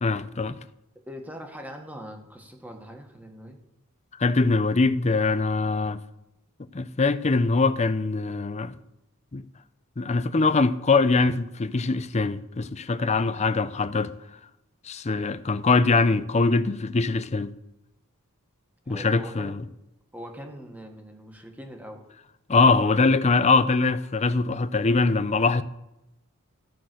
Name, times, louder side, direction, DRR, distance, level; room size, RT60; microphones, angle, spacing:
voice 1, 0.0-0.6 4.2-6.0 6.7-8.7 9.3-9.4 10.0-14.1 14.8-17.5 18.9-19.6 22.5-25.6, left 3 dB, 30° left, 0.5 m, -22 dB
voice 2, 1.1-3.6 18.8-19.5 20.1-22.0, equal, 10° right, 1.6 m, -41 dB
14.0 x 6.0 x 7.8 m
head